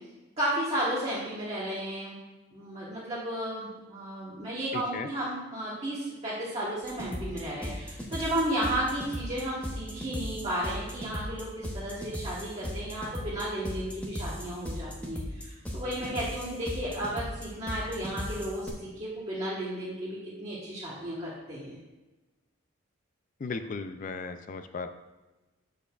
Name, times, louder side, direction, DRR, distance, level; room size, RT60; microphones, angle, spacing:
voice 1, 0.4-2.2 2.5-21.8, right 1 dB, 30° right, -9 dB, 1.2 m, -33 dB
voice 2, 4.7-5.1 23.4-24.9, left 4 dB, 40° left, 9 dB, 0.3 m, -36 dB
sound 1, 6.8-18.7, equal, 5° left, 0.6 m, -37 dB
7.5 x 6.6 x 2.4 m, 1.1 s
head